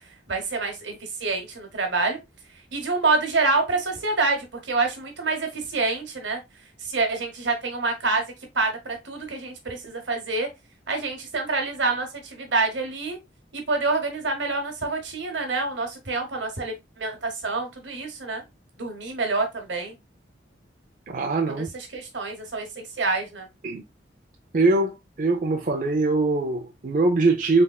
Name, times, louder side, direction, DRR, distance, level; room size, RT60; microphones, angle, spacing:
voice 1, 0.3-2.2 2.7-6.4 6.8-8.2 8.5-10.5 10.9-13.2 13.5-18.4 18.8-19.9 21.6-23.5, right 3 dB, 80° right, 1.1 m, -27 dB
voice 2, 21.1-21.7 23.6-23.8 24.5-27.6, right 3 dB, 45° right, 0.5 m, -22 dB
3.5 x 3.3 x 2.3 m
head